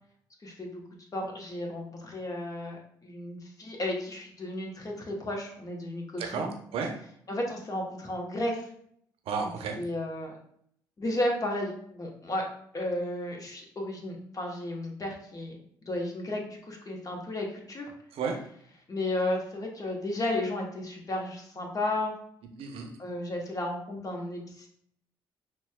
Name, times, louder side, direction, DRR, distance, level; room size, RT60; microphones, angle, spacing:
voice 1, 1.1-6.5 7.3-8.7 9.4-9.5 9.8-10.3 11.0-12.5 12.7-17.9 18.9-22.2 23.0-24.7, left 1 dB, 30° left, 0 dB, 1.1 m, -33 dB
voice 2, 6.2-6.9 9.3-9.8 18.1-18.3 22.6-22.9, right 5 dB, 60° right, 4 dB, 0.7 m, -32 dB
5.8 x 2.2 x 2.3 m, 0.67 s
hypercardioid pair, 45°, 11 cm